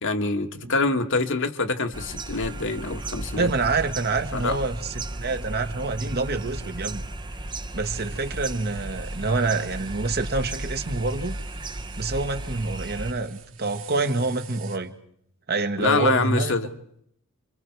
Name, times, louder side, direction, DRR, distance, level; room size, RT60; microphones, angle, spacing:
voice 1, 0.0-3.5 4.3-4.6 15.8-16.7, left 3 dB, 60° left, 1.5 m, -25 dB
sound 1, 1.9-13.1, right 1 dB, 20° right, 0.8 m, -35 dB
voice 2, 3.4-7.0 7.7-11.4 12.0-14.9 15.5-16.5, right 3 dB, 45° right, 1.5 m, -27 dB
sound 2, 7.8-14.8, right 9 dB, 65° right, 3.5 m, -48 dB
28.0 x 24.5 x 4.7 m
head